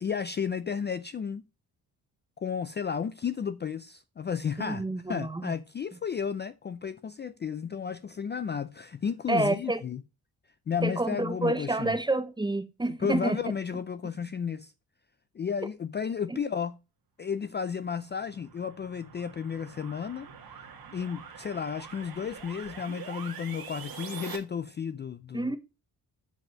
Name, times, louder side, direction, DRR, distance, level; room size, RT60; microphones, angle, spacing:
voice 1, 0.0-1.4 2.4-10.0 10.7-12.0 12.9-14.7 15.3-16.8 17.2-25.5, left 7 dB, 30° left, 0.4 m, -33 dB
voice 2, 4.6-5.5 9.3-9.8 10.8-13.4 25.3-25.6, right 2 dB, 10° right, 0.7 m, -28 dB
sound 1, 17.9-24.4, right 6 dB, 65° right, 1.9 m, -45 dB
7.4 x 5.2 x 6.3 m
wide cardioid pair, 145°, 38 cm